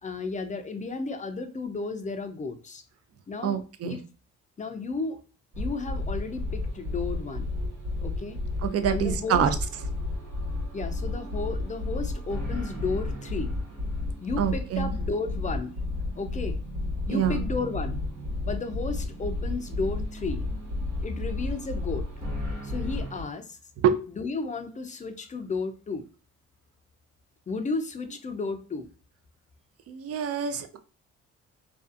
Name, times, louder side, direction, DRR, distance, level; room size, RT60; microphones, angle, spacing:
voice 1, 0.0-2.8 3.3-4.0 4.6-5.2 5.6-7.5 8.0-8.4 8.9-9.5 10.7-13.5 14.2-15.8 16.2-16.6 17.1-18.0 18.5-20.5 21.0-22.1 22.6-23.6 24.1-26.1 27.5-28.9, left 4 dB, 25° left, 7 dB, 0.4 m, -33 dB
voice 2, 3.4-4.0 8.6-9.5 14.4-14.9 17.1-17.4 23.8-24.0 29.9-30.8, right 8 dB, 50° right, 9 dB, 0.5 m, -26 dB
sound 1, 5.5-23.2, left 2 dB, 70° right, 1.2 m, -32 dB
2.6 x 2.4 x 2.4 m, 0.37 s
cardioid pair, 90°, 30 cm